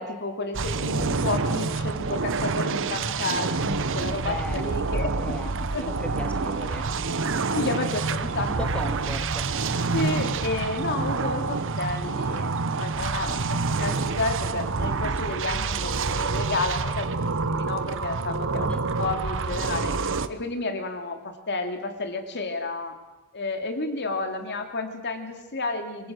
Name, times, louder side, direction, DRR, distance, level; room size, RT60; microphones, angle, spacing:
voice 1, 0.0-5.1 5.7-5.8 7.5-8.7 9.9-18.7 19.0-19.9 20.3-23.0 23.3-26.1, left 2 dB, 50° left, 6 dB, 2.8 m, -31 dB
sound 1, 0.5-20.3, right 4 dB, 60° right, 1.0 m, -27 dB
voice 2, 4.1-7.0 8.5-9.9 13.1-13.9 18.5-18.8, left 1 dB, 5° left, 4 dB, 2.1 m, -39 dB
27.5 x 23.0 x 6.4 m, 1.1 s
head